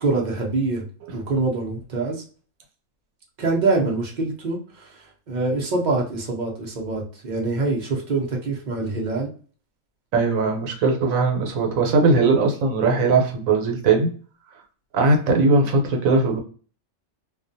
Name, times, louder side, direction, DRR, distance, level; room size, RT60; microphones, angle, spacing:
voice 1, 0.0-0.8 1.1-2.2 3.4-9.3, right 3 dB, 45° right, 0 dB, 0.6 m, -25 dB
voice 2, 10.1-14.1 14.9-16.4, right 3 dB, 80° right, 3 dB, 1.1 m, -19 dB
2.4 x 2.2 x 2.5 m, 0.40 s
omnidirectional pair, 1.4 m